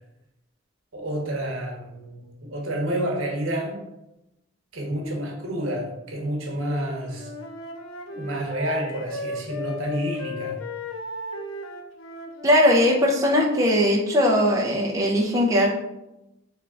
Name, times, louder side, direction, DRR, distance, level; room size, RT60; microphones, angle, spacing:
voice 1, 0.9-3.8 4.7-7.3 8.1-10.6, right 1 dB, 75° right, 0 dB, 1.0 m, -29 dB
Wind instrument woodwind instrument, 7.1-12.8, left 2 dB, 85° left, 0.6 m, -35 dB
voice 2, 12.4-15.7, left 1 dB, 15° right, -3 dB, 0.6 m, -19 dB
3.6 x 3.3 x 3.6 m, 0.91 s
head